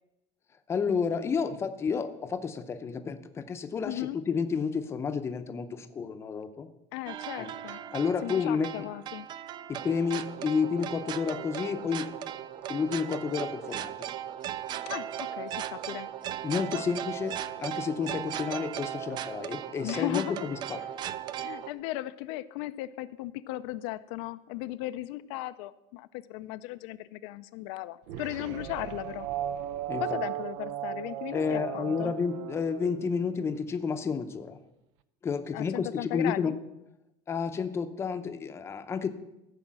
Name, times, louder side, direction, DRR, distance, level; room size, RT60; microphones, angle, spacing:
voice 1, 0.7-6.7 7.4-8.7 9.7-12.1 12.7-14.1 16.4-20.8 28.4-28.5 29.9-30.2 31.3-34.6 35.2-36.5 37.3-39.1, left 5 dB, 15° left, 8 dB, 0.6 m, -31 dB
voice 2, 3.8-4.2 6.9-7.8 8.2-9.3 14.9-16.1 16.7-16.8 19.8-20.4 21.4-29.3 30.0-32.1 35.5-36.6, left 16 dB, 75° left, 12 dB, 0.5 m, -36 dB
sound 1, 7.1-21.7, right 10 dB, 30° right, 0.4 m, -37 dB
sound 2, 28.1-33.6, right 11 dB, 90° right, 0.7 m, -36 dB
14.0 x 5.0 x 7.4 m, 0.90 s
cardioid pair, 170°, 15 cm